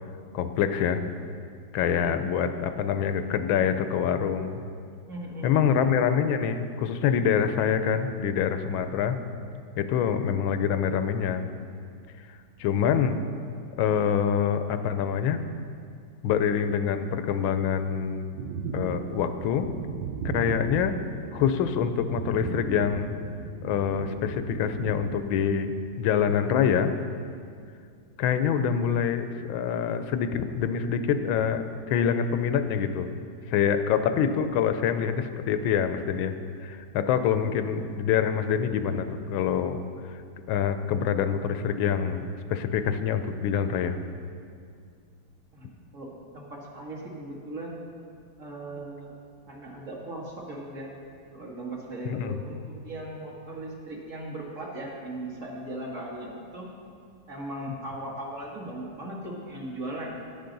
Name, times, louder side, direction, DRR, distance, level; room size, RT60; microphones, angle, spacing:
voice 1, 0.3-1.0 1.7-4.6 5.4-9.2 9.8-11.5 12.6-13.2 13.8-15.4 16.2-18.4 18.7-19.7 20.3-20.9 21.3-23.1 23.6-25.7 26.0-26.9 28.2-33.1 33.5-36.3 36.6-39.8 40.5-44.0 52.0-52.4, left 8 dB, 90° left, 9 dB, 1.4 m, -25 dB
voice 2, 5.1-5.7 45.5-47.8 48.4-49.1 49.5-50.9 51.3-56.7 57.3-60.1, right 1 dB, 45° right, -3 dB, 1.6 m, -38 dB
sound 1, 18.4-25.2, right 5 dB, 90° right, 1.4 m, -36 dB
10.5 x 9.6 x 3.9 m, 2.3 s
omnidirectional pair, 2.1 m